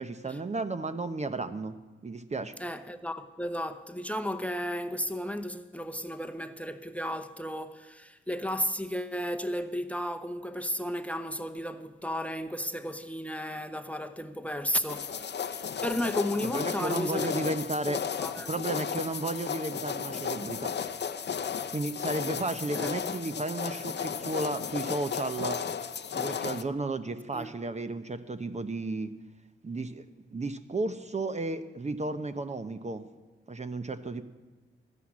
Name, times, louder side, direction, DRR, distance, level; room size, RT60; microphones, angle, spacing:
voice 1, 0.0-1.7 2.0-2.5 16.4-18.0 18.5-20.8 21.7-25.6 26.1-29.1 29.6-30.0 30.3-33.1 33.5-34.2, right 2 dB, 35° right, 0.8 m, -33 dB
voice 2, 2.6-17.5 18.2-18.5 22.7-22.9 27.3-27.5, equal, 5° left, 0.9 m, -34 dB
sound 1, 14.9-26.6, left 7 dB, 55° left, 0.7 m, -34 dB
13.0 x 11.0 x 7.4 m
cardioid pair, 60°, 21 cm